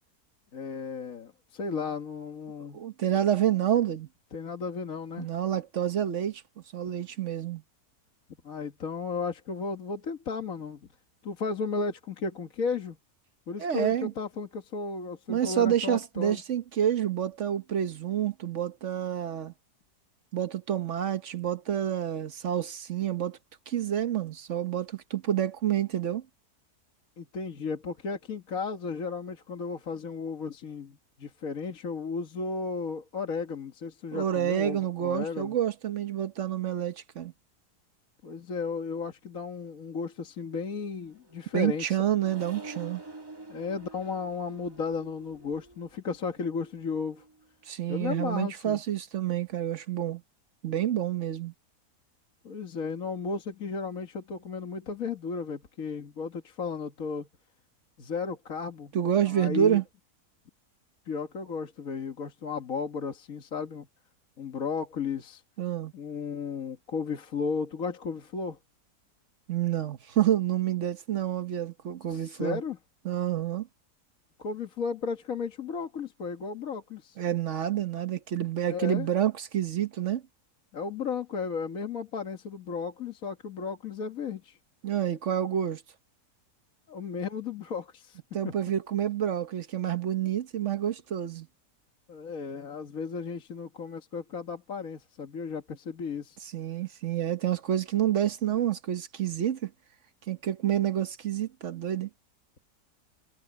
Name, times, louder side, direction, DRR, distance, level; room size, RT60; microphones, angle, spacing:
voice 1, 0.5-2.8 4.3-5.3 8.4-10.8 11.2-13.0 13.5-16.4 27.2-35.5 38.2-42.0 43.5-47.2 47.9-48.8 52.4-57.3 58.0-58.9 59.3-59.8 61.1-63.9 64.4-65.4 65.9-68.6 72.1-72.8 74.4-77.2 78.7-79.1 80.7-84.6 86.9-88.2 88.4-88.5 92.1-96.4, left 5 dB, 60° left, 1.9 m, -34 dB
voice 2, 2.7-4.1 5.2-6.4 6.7-7.6 13.6-14.1 15.3-19.5 20.3-23.4 23.7-26.2 34.1-37.3 41.5-43.0 47.7-50.2 50.6-51.5 58.9-59.8 65.6-65.9 69.5-72.6 73.0-73.7 77.2-80.2 84.8-85.8 88.3-91.5 96.5-99.7 100.3-102.1, right 10 dB, 55° right, 1.1 m, -28 dB
Accelerating revving vroom, 40.8-47.5, right 2 dB, 15° right, 1.4 m, -48 dB
omnidirectional pair, 1.7 m